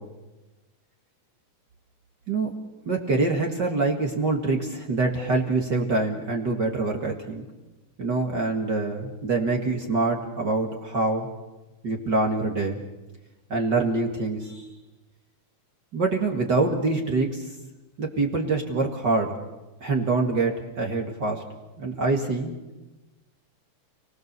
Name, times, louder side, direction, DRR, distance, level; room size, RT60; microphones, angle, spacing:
voice 1, 2.9-7.4 8.0-11.3 11.8-12.8 13.5-14.7 15.9-17.5 18.0-19.4 19.8-21.4 21.8-22.5, right 3 dB, 40° right, 1 dB, 2.1 m, -25 dB
29.5 x 20.0 x 6.8 m, 1.1 s
omnidirectional pair, 3.5 m